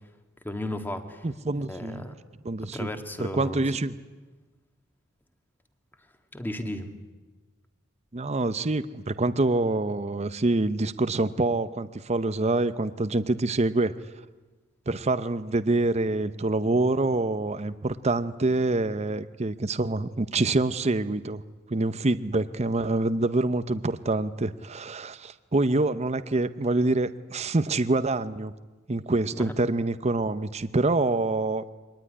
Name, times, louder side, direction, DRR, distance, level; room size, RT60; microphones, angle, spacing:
voice 1, 0.4-1.2 1.7-2.1 2.7-3.6 6.3-6.9 29.3-29.5, left 1 dB, 10° left, 6 dB, 1.8 m, -34 dB
voice 2, 1.2-2.1 2.4-2.9 3.2-3.9 8.1-13.9 14.9-21.4 21.7-28.5 28.9-31.6, right 2 dB, 35° right, 12 dB, 0.7 m, -26 dB
24.0 x 19.5 x 9.9 m, 1.3 s
head